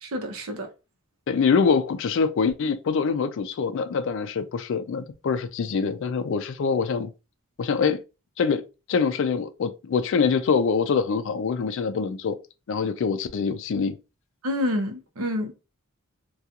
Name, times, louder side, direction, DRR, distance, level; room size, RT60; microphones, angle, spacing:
voice 1, 0.0-0.7 14.4-15.5, left 1 dB, 75° right, 0.7 m, -28 dB
voice 2, 1.3-7.1 7.6-8.0 8.4-8.6 8.9-12.3 12.7-14.0, left 5 dB, 60° left, 0.3 m, -24 dB
2.8 x 2.3 x 2.3 m
head